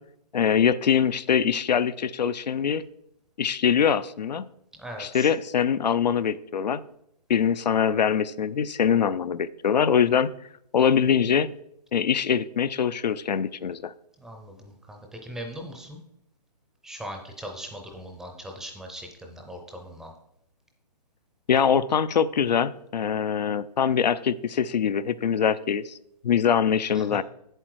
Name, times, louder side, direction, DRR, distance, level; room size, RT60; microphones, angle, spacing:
voice 1, 0.3-2.8 3.4-4.4 5.0-6.8 7.3-10.3 10.7-11.5 11.9-13.9 21.5-25.9 26.2-27.2, left 7 dB, 85° left, 14 dB, 0.6 m, -23 dB
voice 2, 4.8-5.3 14.2-16.0 16.8-20.1 26.9-27.2, equal, ahead, 2 dB, 0.5 m, -40 dB
7.7 x 7.5 x 4.7 m, 0.75 s
hypercardioid pair, 160°, 21 cm